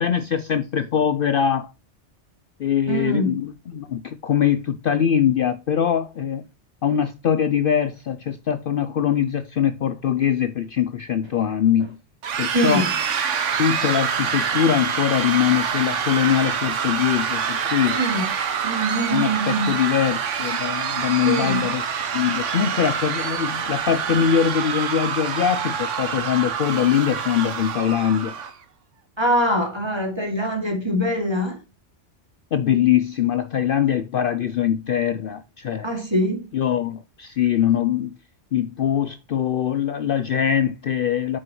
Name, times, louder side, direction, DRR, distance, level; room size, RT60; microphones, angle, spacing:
voice 1, 0.0-1.7 2.6-6.4 6.8-12.0 12.4-12.8 13.6-18.0 19.1-21.8 22.1-28.3 32.5-35.9 36.5-38.1 38.5-41.4, left 9 dB, 60° left, 0.7 m, -22 dB
voice 2, 2.9-3.3 12.5-12.9 17.9-18.2 18.6-19.8 21.2-21.6 29.2-31.6 35.8-36.5, right 1 dB, 20° right, 2.6 m, -23 dB
sound 1, 12.2-28.5, right 7 dB, 90° right, 1.3 m, -26 dB
9.1 x 6.2 x 3.0 m
omnidirectional pair, 1.2 m